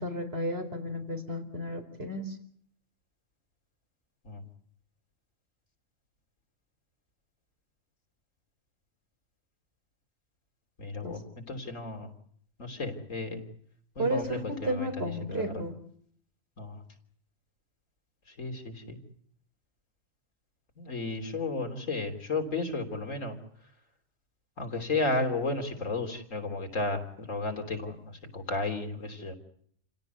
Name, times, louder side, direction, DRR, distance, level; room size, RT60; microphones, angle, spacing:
voice 1, 0.0-2.4 11.0-11.1 14.0-15.7, equal, 50° right, 5 dB, 4.5 m, -33 dB
voice 2, 10.8-12.1 12.6-13.4 14.0-15.6 16.6-16.8 18.3-19.0 20.8-23.4 24.6-29.3, left 3 dB, 85° left, 5 dB, 3.7 m, -33 dB
28.5 x 17.0 x 8.0 m, 0.65 s
omnidirectional pair, 1.3 m